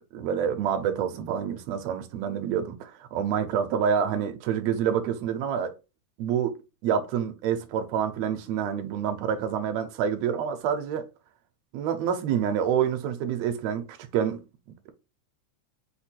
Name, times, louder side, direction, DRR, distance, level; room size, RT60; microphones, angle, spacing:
voice 1, 0.1-5.7 6.2-6.6 6.8-11.1 11.7-14.4, right 8 dB, 75° right, 1.7 m, -27 dB
5.1 x 2.3 x 4.3 m
omnidirectional pair, 3.3 m